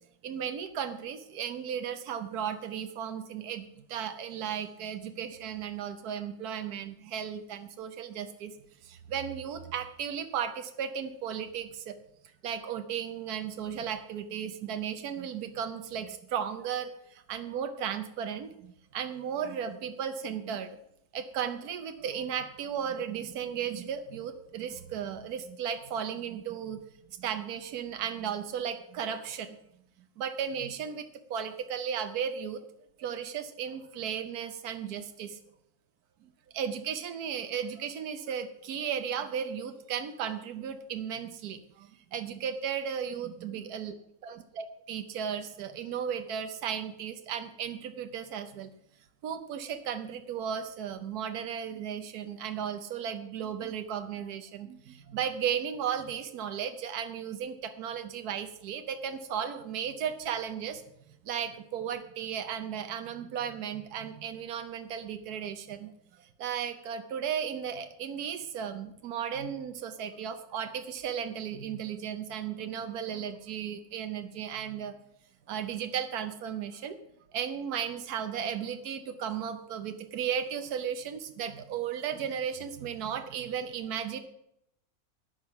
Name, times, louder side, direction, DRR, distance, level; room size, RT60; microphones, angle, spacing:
voice 1, 0.2-8.5 8.8-12.0 12.4-20.8 21.1-26.8 27.2-29.6 30.2-32.6 33.0-35.4 36.5-43.9 44.2-48.7 49.2-60.8 61.2-65.9 66.2-74.9 75.5-77.0 77.3-84.2, right 8 dB, 80° right, 8 dB, 1.4 m, -35 dB
13.5 x 9.5 x 5.8 m, 0.78 s
omnidirectional pair, 1.6 m